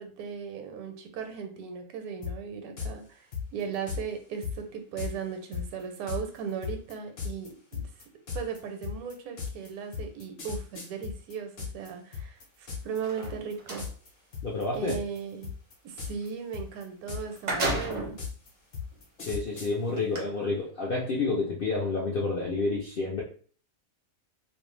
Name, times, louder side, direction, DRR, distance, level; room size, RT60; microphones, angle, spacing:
voice 1, 0.0-3.3 3.5-7.9 8.3-13.8 14.7-15.5 15.8-18.1, right 6 dB, 80° right, 5 dB, 1.0 m, -37 dB
sound 1, 2.2-2.3 2.8-2.9 3.3-4.0 4.4-4.5 5.0-5.1 5.5-11.9 12.1-13.0 13.2-13.5 13.8-14.1 14.3-15.2 15.4-16.3 16.5-19.7, left 6 dB, 50° left, 0.9 m, -36 dB
sound 2, 12.9-13.9 16.7-16.8 17.1-18.2 18.9-19.0 20.0-20.2, right 2 dB, 50° right, 0.5 m, -32 dB
voice 2, 14.4-15.0 19.2-23.2, left 3 dB, 70° left, -3 dB, 0.5 m, -29 dB
2.5 x 2.1 x 3.1 m, 0.44 s
omnidirectional pair, 1.6 m